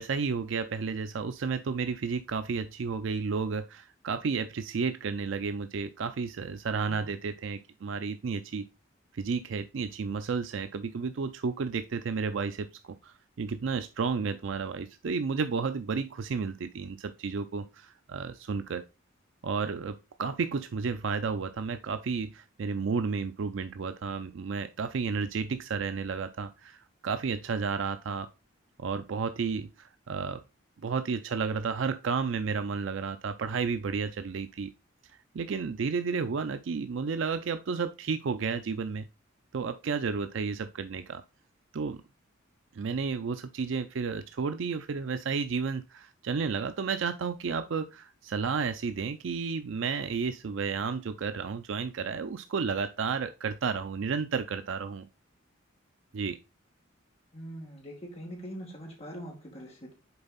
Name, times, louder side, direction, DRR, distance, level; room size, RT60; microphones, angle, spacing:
voice 1, 0.0-8.7 9.1-18.9 19.4-28.3 28.8-30.4 30.8-34.7 35.3-39.1 39.5-41.2 41.7-42.0 42.7-55.1 56.1-56.4, right 5 dB, 65° right, 10 dB, 0.4 m, -32 dB
voice 2, 57.3-59.9, equal, 30° left, -1 dB, 2.3 m, -43 dB
6.8 x 4.4 x 4.0 m, 0.28 s
head